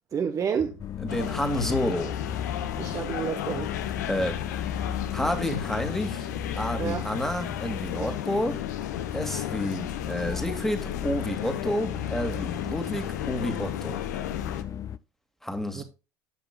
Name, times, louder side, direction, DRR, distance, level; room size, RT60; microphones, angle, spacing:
voice 1, 0.1-0.7 2.8-3.7 6.8-7.0 8.0-8.1 15.7-15.8, right 7 dB, 35° right, 0.8 m, -29 dB
sound 1, 0.8-15.0, left 9 dB, 35° left, 0.4 m, -35 dB
voice 2, 1.0-2.1 4.1-4.4 5.1-6.3 6.6-8.6 9.1-14.0 15.4-15.8, left 1 dB, 5° left, 1.9 m, -30 dB
sound 2, 1.1-14.6, left 11 dB, 80° left, 0.7 m, -35 dB
14.5 x 5.8 x 2.2 m
hypercardioid pair, 70°, 9 cm